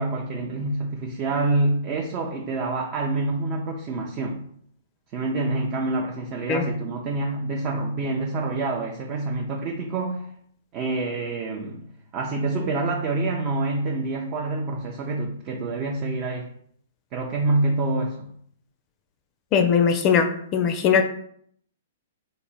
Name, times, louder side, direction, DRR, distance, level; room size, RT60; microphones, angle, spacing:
voice 1, 0.0-4.5 5.1-10.3 10.7-11.8 12.1-16.5 17.1-18.3, right 2 dB, 35° right, 0.5 m, -27 dB
voice 2, 19.5-21.0, left 7 dB, 35° left, 0.4 m, -20 dB
3.3 x 2.1 x 4.1 m
hypercardioid pair, 115°, 0 cm